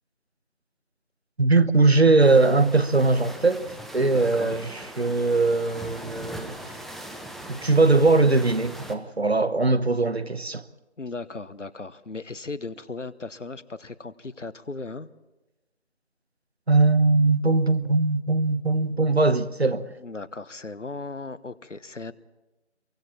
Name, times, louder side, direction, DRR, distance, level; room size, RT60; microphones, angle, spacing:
voice 1, 1.4-6.7 7.5-10.6 16.7-19.9, right 3 dB, 60° right, 1.1 m, -21 dB
sound 1, 2.2-8.9, right 1 dB, ahead, 0.6 m, -40 dB
voice 2, 4.0-4.6 11.0-15.1 20.0-22.1, left 3 dB, 85° left, 1.2 m, -37 dB
28.5 x 23.5 x 4.3 m
figure-of-eight pair, 175°, 36 cm